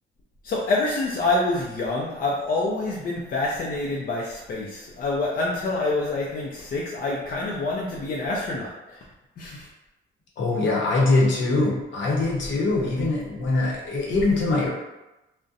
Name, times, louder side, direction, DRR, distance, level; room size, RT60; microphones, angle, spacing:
voice 1, 0.4-8.7 9.4-9.7, left 2 dB, 45° left, -4 dB, 0.5 m, -26 dB
voice 2, 10.4-14.7, left 2 dB, 65° left, -3 dB, 0.8 m, -23 dB
2.6 x 2.1 x 2.5 m, 0.98 s
cardioid pair, 90°, 20 cm